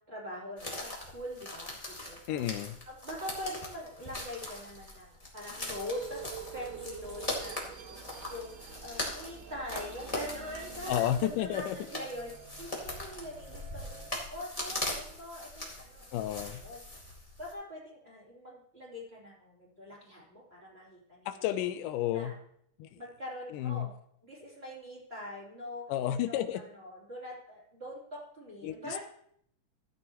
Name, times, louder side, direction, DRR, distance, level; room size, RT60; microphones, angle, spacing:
voice 1, 0.1-1.7 2.0-2.4 2.8-6.2 6.5-8.0 8.3-16.0 16.3-16.8 17.4-21.4 22.1-22.4 23.0-23.9 24.2-25.9 26.1-29.0, left 1 dB, 20° right, -6 dB, 3.3 m, -43 dB
sound 1, 0.6-17.5, left 1 dB, 15° left, 1.4 m, -41 dB
voice 2, 2.3-2.8 10.9-11.8 16.1-16.6 21.3-22.3 22.8-23.0 23.5-23.9 25.9-26.6 28.6-29.0, left 12 dB, 85° left, 11 dB, 2.1 m, -32 dB
sound 2, 5.9-14.1, right 8 dB, 85° right, 1.4 m, -48 dB
14.5 x 9.1 x 3.0 m, 0.67 s
omnidirectional pair, 3.7 m